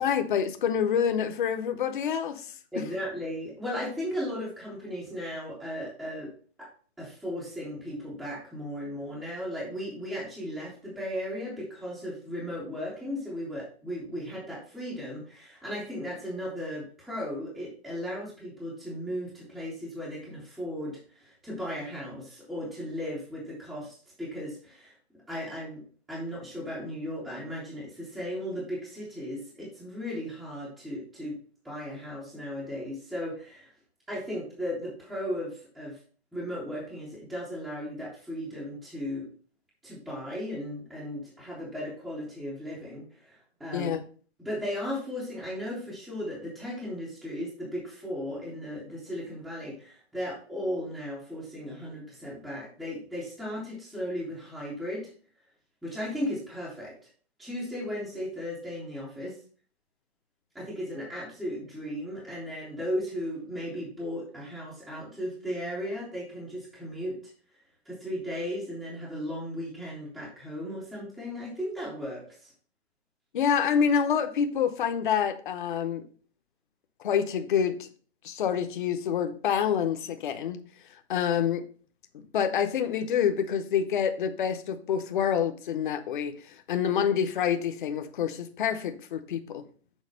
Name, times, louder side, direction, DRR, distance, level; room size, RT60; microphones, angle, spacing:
voice 1, 0.0-2.5 2.8-2.9 43.7-44.0 73.3-76.0 77.0-77.9 78.2-80.6 81.1-81.6 82.1-89.6, left 8 dB, 50° left, 8 dB, 0.8 m, -27 dB
voice 2, 2.7-6.3 6.6-6.7 7.0-24.9 25.3-25.8 26.1-31.3 31.6-33.7 34.1-36.0 36.3-39.3 39.8-43.9 44.4-55.1 55.8-57.0 57.4-59.4 60.5-67.2 67.9-72.5, equal, ahead, -7 dB, 0.5 m, -36 dB
6.4 x 4.0 x 5.1 m, 0.41 s
hypercardioid pair, 155°, 33 cm